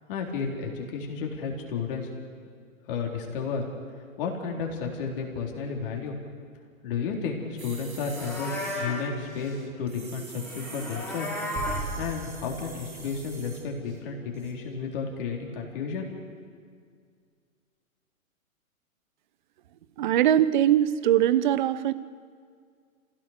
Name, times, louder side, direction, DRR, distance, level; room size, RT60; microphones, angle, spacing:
voice 1, 0.1-2.1 2.9-3.7 4.2-6.2 6.8-11.3 12.0-16.1, left 5 dB, 40° left, 0 dB, 4.0 m, -32 dB
sound 1, 7.6-14.0 14.3-14.5, right 4 dB, 75° right, 4.0 m, -45 dB
Livestock farm animals working animals, 8.0-9.1 10.4-11.9, left 1 dB, 5° left, 4.2 m, -34 dB
Explosion, 11.5-14.8, right 3 dB, 20° right, 1.3 m, -39 dB
voice 2, 20.0-21.9, right 11 dB, 35° right, 16 dB, 0.7 m, -21 dB
27.5 x 16.5 x 6.7 m, 2.1 s
figure-of-eight pair, 125°, 42 cm